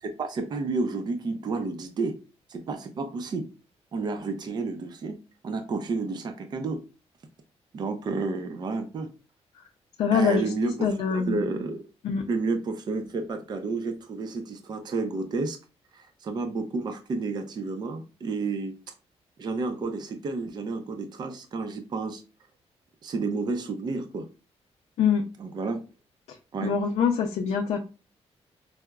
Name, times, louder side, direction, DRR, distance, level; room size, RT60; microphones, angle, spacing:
voice 1, 0.0-2.2 2.5-3.5 3.9-5.2 5.4-6.8 7.7-9.1 10.1-11.9 12.3-15.6 15.9-18.7 19.4-22.2 23.0-24.3 25.4-25.8 26.5-26.7, right 3 dB, 40° right, 6 dB, 0.4 m, -31 dB
voice 2, 10.0-10.5 10.8-11.4 12.0-12.2 25.0-25.3 26.3-26.4 26.6-27.8, left 6 dB, 80° left, 1 dB, 0.4 m, -24 dB
4.6 x 2.0 x 2.2 m, 0.32 s
wide cardioid pair, 160°, 11 cm